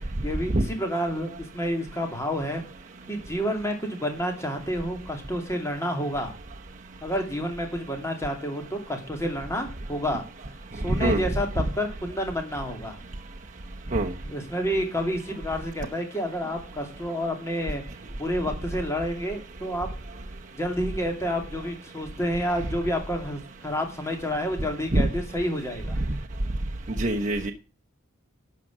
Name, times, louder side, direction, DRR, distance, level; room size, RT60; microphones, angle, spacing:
voice 1, 0.2-2.6 3.1-6.3 7.0-10.2 10.7-13.0 14.2-17.8 18.2-19.9 20.6-26.0, equal, 15° left, 3 dB, 2.5 m, -29 dB
voice 2, 27.0-27.5, right 1 dB, 35° right, 1 dB, 0.9 m, -23 dB
12.0 x 6.2 x 7.5 m, 0.34 s
head